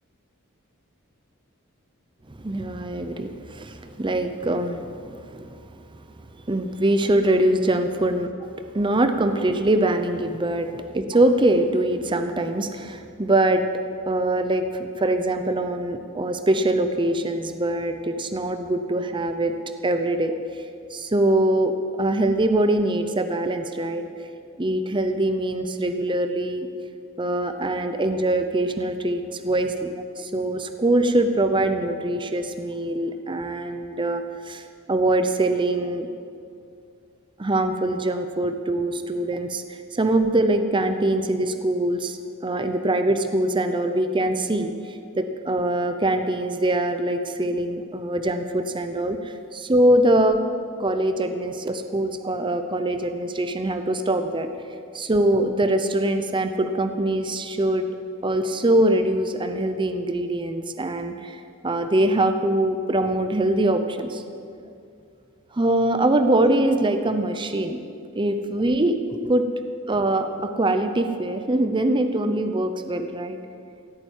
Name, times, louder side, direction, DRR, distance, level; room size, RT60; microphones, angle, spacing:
voice 1, 2.4-5.6 6.5-8.3 8.7-13.7 14.1-19.5 19.8-20.4 20.9-24.0 24.6-26.7 27.2-36.1 37.4-50.4 50.8-54.5 54.9-57.9 58.2-64.2 65.5-67.8 68.1-69.4 69.9-73.4, right 1 dB, 25° right, 8 dB, 0.7 m, -23 dB
15.5 x 8.8 x 9.0 m, 2.4 s
head